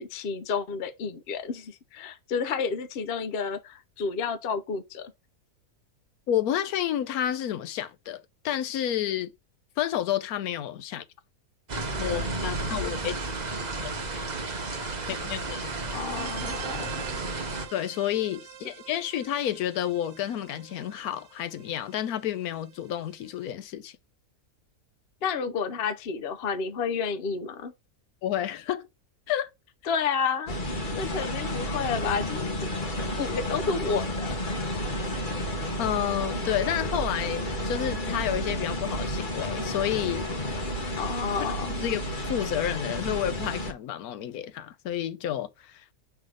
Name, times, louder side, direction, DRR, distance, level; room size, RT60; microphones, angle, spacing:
voice 1, 0.0-5.1 15.9-17.2 25.2-27.7 29.9-30.5 30.9-32.7 33.0-34.7 41.0-41.8, left 5 dB, 50° left, 0.8 m, -31 dB
voice 2, 6.3-9.3 9.8-11.0 12.0-13.1 13.8-13.9 15.1-15.9 17.7-23.9 28.2-28.9 29.3-29.5 35.8-40.3 40.7-40.8 41.7-42.0 42.3-45.8, left 11 dB, 85° left, 1.1 m, -30 dB
sound 1, 11.7-17.7, right 3 dB, 30° right, 1.0 m, -32 dB
sound 2, 16.1-23.5, right 10 dB, 60° right, 0.9 m, -45 dB
sound 3, 30.5-43.7, equal, 35° left, 1.2 m, -31 dB
5.6 x 3.5 x 5.0 m
omnidirectional pair, 1.6 m